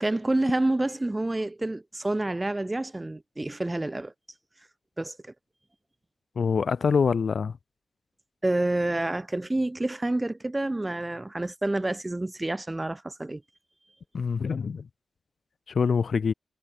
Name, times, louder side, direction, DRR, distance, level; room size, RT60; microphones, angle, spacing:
voice 1, 0.0-4.1 5.0-5.3 8.4-13.4, right 2 dB, 15° right, 2.1 m, -28 dB
voice 2, 6.4-7.5 14.1-14.8 15.7-16.3, left 5 dB, 60° left, 0.4 m, -25 dB
wide cardioid pair, 135°, 0 cm